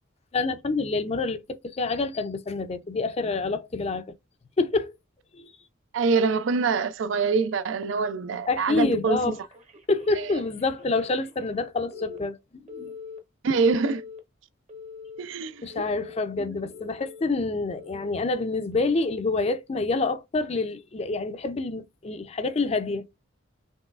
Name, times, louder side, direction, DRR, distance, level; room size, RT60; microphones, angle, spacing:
voice 1, 0.3-1.4 1.7-4.0 4.6-4.9 5.3-5.5 8.5-9.4 9.9-12.9 15.6-23.1, left 3 dB, 30° left, 0.4 m, -27 dB
voice 2, 5.9-9.3 13.4-14.0 15.2-15.8, right 4 dB, 75° right, 0.4 m, -25 dB
Telephone, 9.2-11.6 11.9-12.2 12.7-13.2 13.7-14.2 14.7-15.2 15.7-16.2 16.7-17.2 17.7-18.2 18.7-19.1, left 5 dB, 35° right, 0.9 m, -44 dB
5.4 x 3.0 x 2.4 m
head